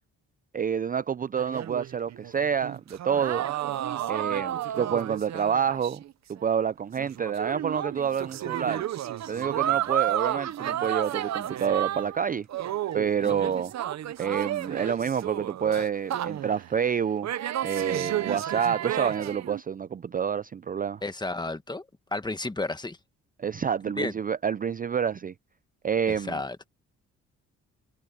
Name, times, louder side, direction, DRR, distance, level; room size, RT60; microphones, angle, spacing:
voice 1, 0.5-3.5 4.1-6.0 6.3-8.8 9.3-12.5 12.9-13.7 14.2-17.3 17.6-21.0 23.4-25.3 25.8-26.4, right 7 dB, 30° right, 0.5 m, -28 dB
sound 1, 1.4-6.1 6.4-6.5 7.0-12.2 12.5-16.7 17.2-19.6, right 12 dB, 65° right, 1.0 m, -32 dB
voice 2, 13.2-13.6 21.0-21.8 22.1-23.0 24.0-24.1 26.2-26.6, left 2 dB, 15° left, 1.6 m, -32 dB
cardioid pair, 90°, 30 cm